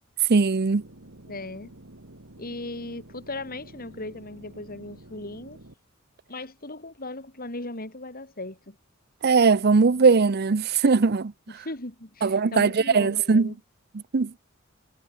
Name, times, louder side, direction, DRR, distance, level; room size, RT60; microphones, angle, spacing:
voice 1, 0.3-0.8 9.2-11.3 12.2-13.5 14.1-14.3, right 4 dB, 50° right, 0.6 m, -20 dB
sound 1, 0.7-5.7, right 1 dB, 65° right, 2.6 m, -49 dB
voice 2, 1.3-1.7 2.4-5.6 6.3-8.8 11.5-13.6, left 2 dB, 45° left, 4.9 m, -37 dB
head